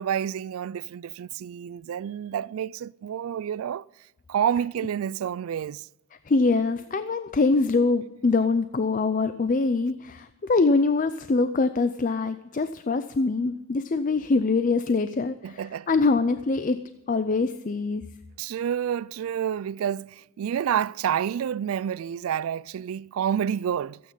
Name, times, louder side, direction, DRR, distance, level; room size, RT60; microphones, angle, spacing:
voice 1, 0.0-3.8 4.3-5.8 15.4-15.9 18.4-24.0, right 9 dB, 90° right, 0.3 m, -29 dB
voice 2, 6.3-16.8 17.1-18.0, left 3 dB, 40° left, 0.4 m, -24 dB
15.5 x 8.7 x 5.4 m
head